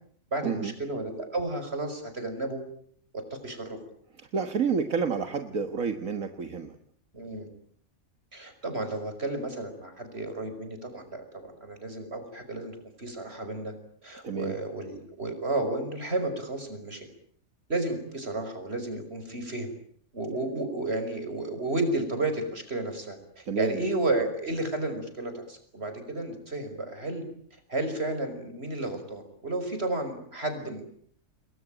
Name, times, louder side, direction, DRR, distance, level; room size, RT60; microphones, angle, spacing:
voice 1, 0.3-2.6 3.1-3.8 7.1-7.5 8.3-13.7 14.0-17.1 17.7-19.7 20.1-27.2 27.7-30.9, right 2 dB, 45° right, 8 dB, 5.8 m, -32 dB
voice 2, 4.2-6.8 14.2-14.5 23.4-23.8, right 6 dB, 75° right, 8 dB, 2.0 m, -29 dB
29.5 x 22.0 x 9.1 m, 0.63 s
omnidirectional pair, 1.4 m